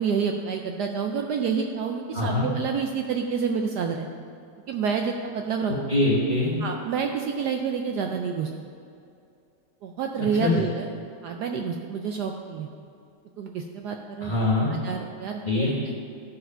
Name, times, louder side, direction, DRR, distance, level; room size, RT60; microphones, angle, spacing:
voice 1, 0.0-4.1 4.7-5.7 6.6-8.5 9.8-10.9 11.2-12.7 13.4-14.3 14.8-15.7, right 6 dB, 70° right, 3 dB, 1.0 m, -28 dB
voice 2, 2.1-2.5 5.9-6.6 10.4-10.6 14.2-14.7 15.4-15.7, left 2 dB, 25° left, -8 dB, 1.2 m, -23 dB
12.5 x 4.8 x 5.5 m, 2.5 s
omnidirectional pair, 2.1 m